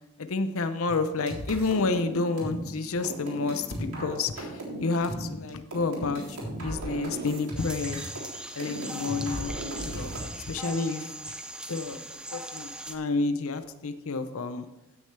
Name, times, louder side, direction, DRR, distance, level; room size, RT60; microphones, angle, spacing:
voice 1, 0.2-8.0 8.6-10.1 10.5-11.4 11.7-12.0 12.3-14.7, left 3 dB, 70° left, 10 dB, 0.7 m, -30 dB
sound 1, 0.9-8.3 8.6-10.2, right 1 dB, 80° right, 3.6 m, -36 dB
sound 2, 7.6-13.0, right 1 dB, 5° right, 0.5 m, -40 dB
15.5 x 6.5 x 3.3 m, 0.96 s
head